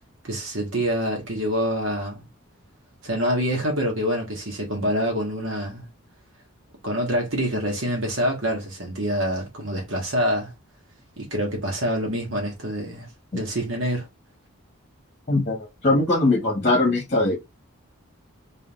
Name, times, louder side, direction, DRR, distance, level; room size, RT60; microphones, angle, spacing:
voice 1, 0.2-2.2 3.0-5.9 6.8-10.5 11.2-13.1 13.3-14.1, equal, 65° right, 1.7 m, -26 dB
voice 2, 15.3-17.4, left 2 dB, 35° left, 1.2 m, -21 dB
4.0 x 3.7 x 2.5 m
head